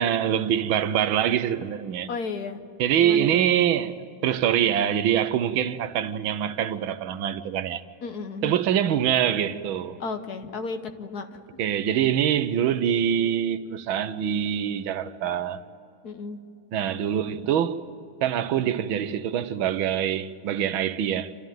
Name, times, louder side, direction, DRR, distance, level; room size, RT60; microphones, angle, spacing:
voice 1, 0.0-2.1 2.8-7.8 8.4-10.0 11.6-15.6 16.7-17.8 18.2-21.3, right 9 dB, 90° right, 1.6 m, -24 dB
voice 2, 2.1-2.6 2.9-3.4 8.0-8.6 10.0-11.4 16.0-16.4, left 4 dB, 55° left, 1.4 m, -33 dB
28.0 x 13.0 x 9.2 m
omnidirectional pair, 2.2 m